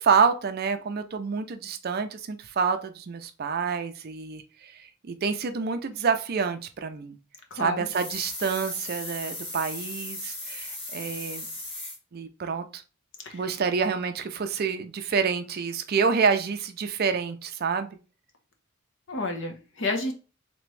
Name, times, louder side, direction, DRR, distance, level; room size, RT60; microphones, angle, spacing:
voice 1, 0.0-7.2 7.5-11.5 12.1-12.8 13.3-17.9, right 5 dB, 45° right, 0.4 m, -27 dB
voice 2, 7.5-7.9 13.2-13.4 19.1-20.1, left 2 dB, 60° left, 0.8 m, -30 dB
sound 1, 7.9-12.0, left 2 dB, 25° left, 1.0 m, -37 dB
3.4 x 3.0 x 3.1 m
head